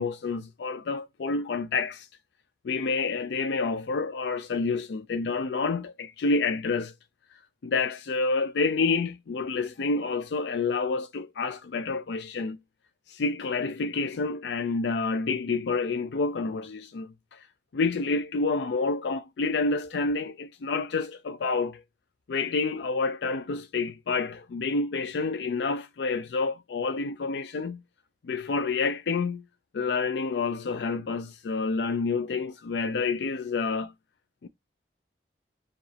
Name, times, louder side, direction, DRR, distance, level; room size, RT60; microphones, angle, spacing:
voice 1, 0.0-2.1 2.6-6.9 7.6-12.6 13.1-17.4 17.7-21.8 22.3-27.8 28.2-29.4 29.7-33.9 34.4-34.5, left 4 dB, 75° left, 0.4 m, -28 dB
4.8 x 3.2 x 2.7 m
head